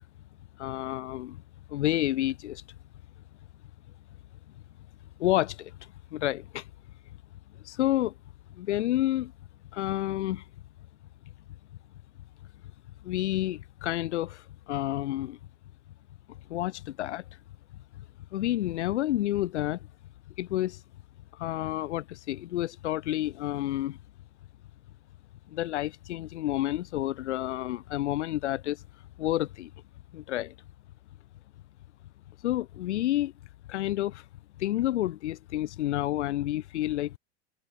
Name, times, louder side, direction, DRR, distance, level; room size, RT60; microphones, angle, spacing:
voice 1, 0.6-1.4 1.7-2.6 5.2-5.7 6.1-6.6 7.6-8.1 8.5-9.3 9.7-10.4 13.0-15.4 16.5-17.2 18.3-19.8 20.4-20.8 21.4-24.0 25.5-28.8 29.2-29.7 30.1-30.5 32.4-33.3 33.7-34.2 34.6-37.2, left 14 dB, 85° left, 0.8 m, -29 dB
hypercardioid pair, 105°, 34 cm